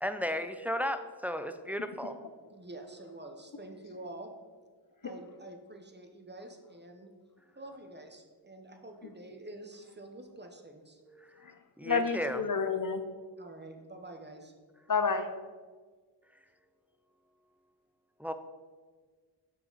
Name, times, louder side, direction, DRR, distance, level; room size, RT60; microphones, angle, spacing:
voice 1, 0.0-2.2 11.1-11.4 11.8-12.4 18.2-18.3, equal, 5° right, 9 dB, 0.4 m, -34 dB
voice 2, 2.5-4.3 5.0-7.1 7.5-11.0 13.4-14.5, right 1 dB, 25° right, 4 dB, 0.9 m, -47 dB
voice 3, 11.8-13.0 14.9-15.3, left 5 dB, 45° left, 8 dB, 0.7 m, -29 dB
7.3 x 5.8 x 3.9 m, 1.5 s
wide cardioid pair, 65°, 46 cm